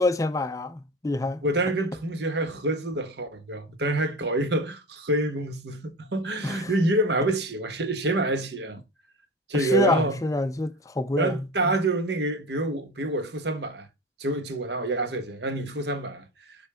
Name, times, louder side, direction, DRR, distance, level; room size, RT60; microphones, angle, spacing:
voice 1, 0.0-1.4 6.4-6.7 9.5-11.7, left 2 dB, 15° left, 0.4 m, -27 dB
voice 2, 1.4-8.8 9.5-10.2 11.2-13.9 14.2-16.2, right 2 dB, 60° right, 1.2 m, -27 dB
8.2 x 5.2 x 3.4 m
head